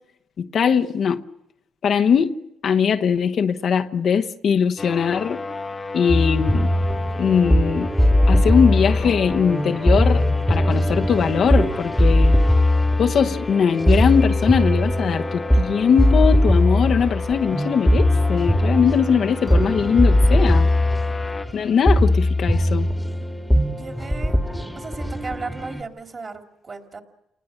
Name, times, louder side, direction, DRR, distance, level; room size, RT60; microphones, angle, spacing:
voice 1, 0.4-1.2 1.8-2.4 2.6-5.4 5.9-6.7 7.2-7.9 8.3-12.3 13.0-20.7 21.5-22.9, left 7 dB, 60° left, 1.0 m, -20 dB
sound 1, 4.8-21.5, left 3 dB, 25° left, 0.9 m, -33 dB
sound 2, 6.1-25.8, left 1 dB, ahead, 1.6 m, -20 dB
voice 2, 23.8-24.4 24.7-27.0, right 4 dB, 35° right, 3.0 m, -35 dB
29.0 x 19.5 x 6.4 m
cardioid pair, 90°, 0 cm